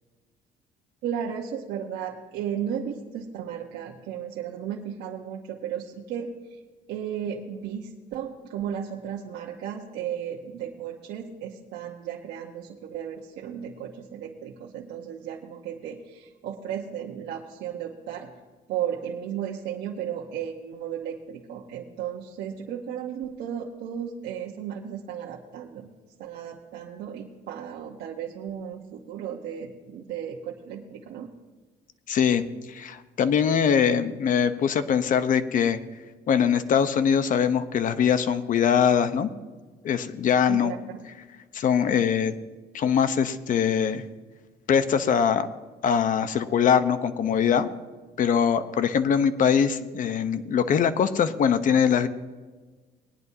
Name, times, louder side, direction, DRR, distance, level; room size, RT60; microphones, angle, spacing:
voice 1, 1.0-6.6 6.9-18.3 18.7-25.9 26.2-31.3 40.5-41.0, right 9 dB, 80° right, -1 dB, 1.2 m, -35 dB
voice 2, 32.1-35.8 36.3-39.3 39.8-40.7 41.5-42.3 42.7-44.0 44.7-45.5 45.8-47.7 48.2-52.1, left 7 dB, 50° left, 11 dB, 0.9 m, -22 dB
19.5 x 10.5 x 2.8 m, 1.3 s
cardioid pair, 110°, 17 cm